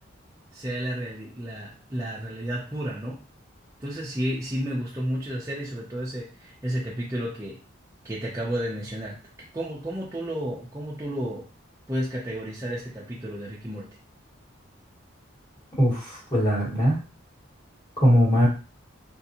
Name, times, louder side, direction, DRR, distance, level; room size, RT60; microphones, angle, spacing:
voice 1, 0.5-3.2 3.8-7.6 8.0-9.2 9.5-11.5 11.9-13.9, equal, 15° right, -5 dB, 0.5 m, -32 dB
voice 2, 15.8-17.0 18.0-18.5, equal, 20° left, -7 dB, 1.5 m, -20 dB
3.5 x 2.5 x 2.8 m, 0.35 s
head